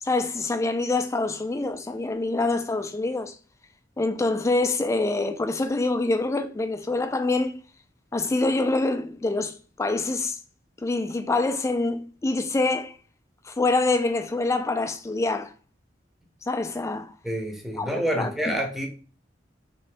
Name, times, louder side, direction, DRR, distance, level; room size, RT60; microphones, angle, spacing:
voice 1, 0.0-3.4 4.0-7.6 8.1-10.4 10.8-13.0 13.5-15.5 16.4-17.1 17.8-18.6, left 2 dB, 15° left, 0.3 m, -26 dB
voice 2, 17.2-18.9, equal, ahead, 0.7 m, -28 dB
3.7 x 2.6 x 3.2 m
head